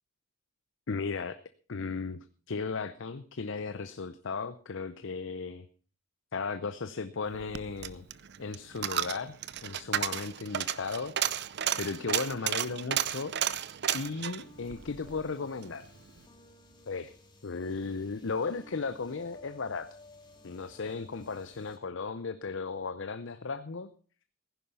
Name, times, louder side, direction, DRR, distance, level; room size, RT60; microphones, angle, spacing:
voice 1, 0.9-1.4 1.7-2.2 2.5-5.7 6.3-8.0 8.4-9.4 9.6-11.1 11.8-13.3 13.9-15.9 16.9-17.1 17.4-19.9 20.4-23.9, left 4 dB, 60° left, 12 dB, 0.7 m, -35 dB
Coin (dropping), 7.3-15.7 16.1-16.2, right 10 dB, 50° right, 0.6 m, -33 dB
sound 1, 14.4-21.8, left 2 dB, 20° left, 2.4 m, -56 dB
15.5 x 10.5 x 5.5 m, 0.41 s
head